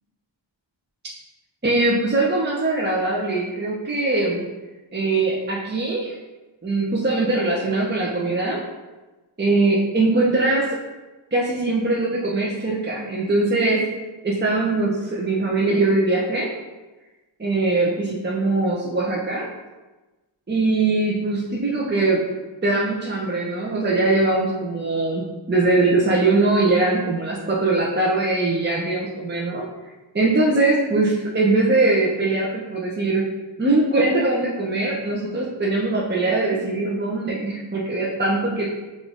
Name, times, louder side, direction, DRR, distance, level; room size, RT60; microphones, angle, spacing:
voice 1, 1.6-4.4 4.9-6.2 6.6-8.6 9.4-10.7 11.3-13.8 14.2-16.5 17.4-19.5 20.5-22.2 22.6-29.6 30.1-33.2 33.6-38.7, right 2 dB, 20° right, -4 dB, 0.7 m, -21 dB
5.8 x 2.6 x 3.6 m, 1.1 s
wide cardioid pair, 50°, 47 cm